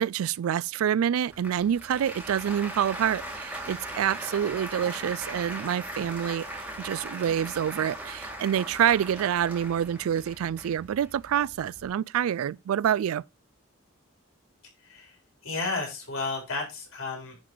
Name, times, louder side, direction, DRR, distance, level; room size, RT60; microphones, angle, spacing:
voice 1, 0.0-6.5 6.8-13.2, right 9 dB, 90° right, 0.3 m, -27 dB
Applause, 1.3-11.9, right 1 dB, 5° right, 1.8 m, -39 dB
voice 2, 14.8-17.4, left 3 dB, 75° left, 4.2 m, -33 dB
10.5 x 4.0 x 4.6 m
head